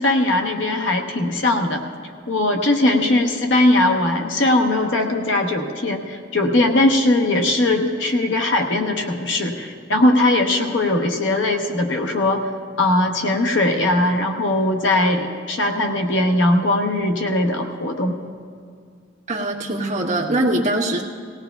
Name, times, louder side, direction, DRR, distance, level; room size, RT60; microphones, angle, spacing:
voice 1, 0.0-1.8 2.3-12.5 12.8-18.2, left 1 dB, 65° left, 3 dB, 0.9 m, -19 dB
voice 2, 19.3-21.0, right 1 dB, 35° right, -3 dB, 1.3 m, -22 dB
19.0 x 17.0 x 2.3 m, 2.1 s
head